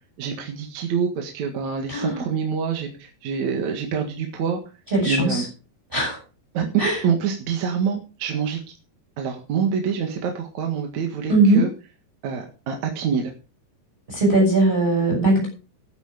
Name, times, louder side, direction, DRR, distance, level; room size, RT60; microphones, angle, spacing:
voice 1, 0.2-4.6 5.0-5.5 6.5-6.7 7.0-8.6 9.2-11.7 12.2-13.3, right 6 dB, 55° right, 3 dB, 2.6 m, -26 dB
voice 2, 1.9-2.2 4.9-5.4 5.9-6.2 6.8-7.0 11.3-11.7 14.1-15.5, right 2 dB, 10° right, -1 dB, 7.3 m, -19 dB
12.5 x 10.5 x 5.0 m, 0.36 s
omnidirectional pair, 4.6 m